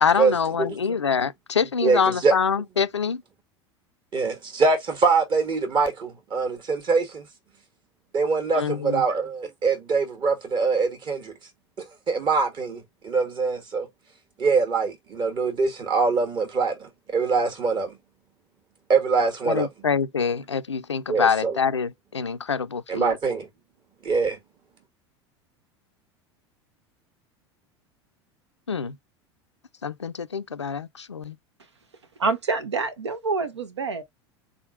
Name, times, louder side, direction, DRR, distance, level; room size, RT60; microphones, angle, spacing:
voice 1, 0.0-3.2 8.5-9.0 19.5-23.1 28.7-29.0 29.8-31.4, left 6 dB, 85° left, 0.4 m, -25 dB
voice 2, 1.8-2.3 4.1-7.3 8.1-11.3 11.8-13.9 14.4-18.0 18.9-19.7 21.1-21.6 22.9-23.5 24.0-24.4, right 4 dB, 35° right, 1.5 m, -23 dB
voice 3, 32.2-34.0, right 4 dB, 80° right, 0.8 m, -26 dB
4.1 x 3.5 x 2.3 m
figure-of-eight pair, 80°, 14 cm